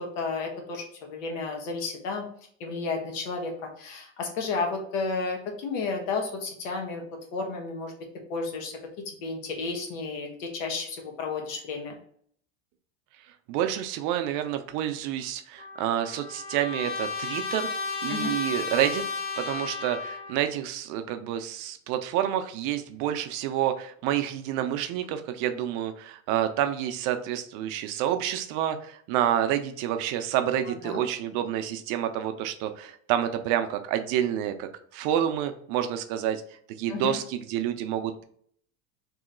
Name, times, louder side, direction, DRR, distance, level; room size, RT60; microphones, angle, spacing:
voice 1, 0.0-2.3 2.6-7.0 7.3-7.9 8.3-8.7 9.0-11.9 18.1-18.3 30.8-31.0 36.9-37.1, left 4 dB, 80° left, 2 dB, 1.2 m, -32 dB
voice 2, 13.5-17.7 18.0-19.0 19.4-36.4 36.8-38.2, right 11 dB, 55° right, 8 dB, 0.6 m, -28 dB
Trumpet, 15.6-20.5, left 4 dB, 25° left, 0.5 m, -33 dB
3.1 x 2.8 x 3.7 m, 0.62 s
supercardioid pair, 125°, 38 cm